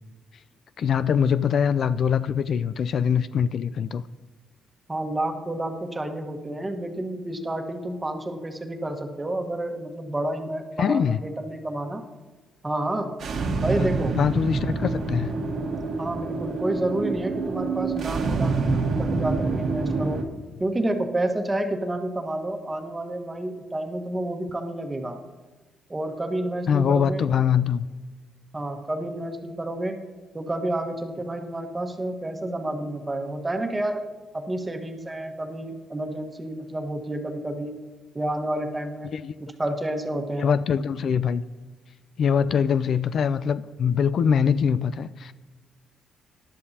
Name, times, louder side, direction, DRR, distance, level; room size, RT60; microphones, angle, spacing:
voice 1, 0.8-4.0 10.8-11.2 13.8-13.9 14.2-15.3 26.7-27.9 39.1-39.3 40.4-41.4 42.2-45.3, left 7 dB, 60° left, 14 dB, 0.4 m, -23 dB
voice 2, 4.9-12.0 12.6-13.1 13.6-14.2 16.0-20.2 20.6-25.2 25.9-27.3 28.5-30.0 30.3-34.1 34.3-37.8 38.1-39.1 39.4-40.5, right 1 dB, 20° right, 4 dB, 1.4 m, -30 dB
sound 1, 13.2-20.2, right 3 dB, 65° right, 1.3 m, -27 dB
18.5 x 11.0 x 2.8 m, 1.3 s
cardioid pair, 90°, 0 cm